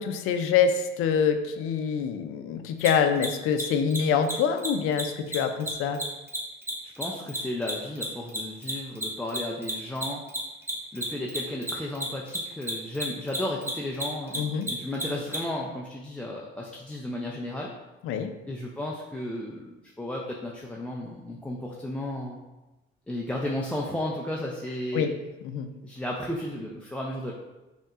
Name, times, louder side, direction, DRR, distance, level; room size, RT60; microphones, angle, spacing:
voice 1, 0.0-6.0 14.3-14.7 18.0-18.3 24.9-25.1 25.4-25.7, left 7 dB, 80° left, 7 dB, 0.4 m, -25 dB
Mechanisms, 2.8-2.9 3.2-3.3 3.5-3.6 3.9-4.3 4.6-4.7 4.9-5.0 5.3-8.0 8.3-15.4, right 1 dB, 10° right, 0.9 m, -32 dB
voice 2, 7.0-10.2 10.9-17.7 18.5-22.4 23.1-25.1 25.8-27.3, left 1 dB, 5° left, -3 dB, 0.4 m, -34 dB
5.3 x 2.9 x 2.4 m, 1.1 s
cardioid pair, 115°, 21 cm